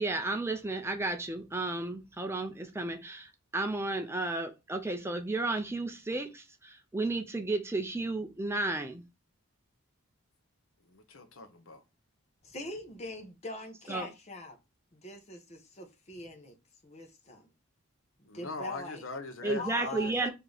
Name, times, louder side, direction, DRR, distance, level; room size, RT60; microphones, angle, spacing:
voice 1, 0.0-9.0 13.9-14.1 19.4-20.3, right 2 dB, 10° right, 0.5 m, -33 dB
voice 2, 10.9-11.8 18.2-20.1, left 3 dB, 70° left, 0.8 m, -41 dB
voice 3, 12.4-14.6 14.9-16.6 16.8-17.5 18.2-19.0 19.6-20.3, left 1 dB, 30° left, 0.8 m, -43 dB
5.0 x 2.8 x 3.8 m
head